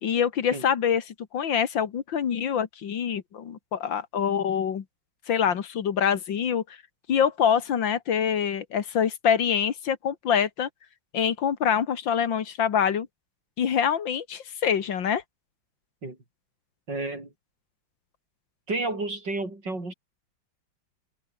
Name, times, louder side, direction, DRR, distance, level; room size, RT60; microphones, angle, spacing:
voice 1, 0.0-4.8 5.3-6.8 7.1-10.7 11.1-13.1 13.6-15.2, left 8 dB, 75° left, 2.3 m, -25 dB
voice 2, 16.9-17.3 18.7-19.9, right 2 dB, 65° right, 7.1 m, -31 dB
omnidirectional pair, 2.1 m